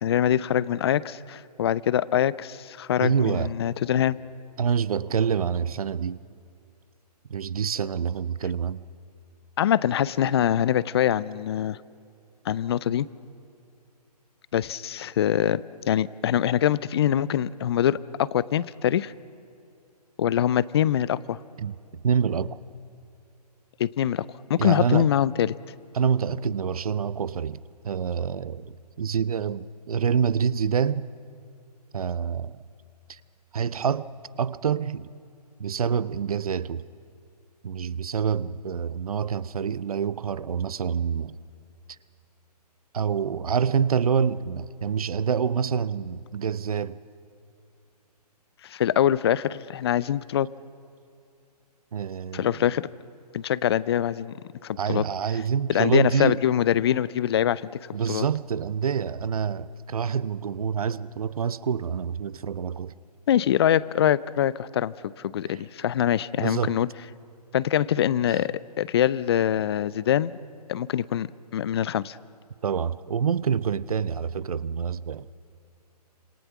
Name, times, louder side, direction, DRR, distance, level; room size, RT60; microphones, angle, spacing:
voice 1, 0.0-4.2 9.6-11.8 12.5-13.1 14.5-15.6 15.9-19.1 20.2-21.4 23.8-25.5 48.6-50.5 52.3-52.9 53.3-54.3 54.6-55.0 55.7-58.2 63.3-66.9 67.5-70.4 70.7-71.3 71.5-72.2, left 10 dB, 40° left, 0.5 m, -24 dB
voice 2, 3.0-3.5 4.6-6.2 7.3-8.8 21.6-21.7 22.0-22.6 24.6-25.1 25.9-31.1 31.9-32.6 33.1-33.2 33.5-34.1 34.4-35.1 35.6-36.8 37.6-41.4 42.9-47.0 51.9-52.7 54.8-56.4 57.9-62.9 65.5-65.6 66.4-66.8 72.6-75.3, right 7 dB, 60° right, 0.7 m, -27 dB
27.0 x 27.0 x 6.0 m
figure-of-eight pair, 135°, 21 cm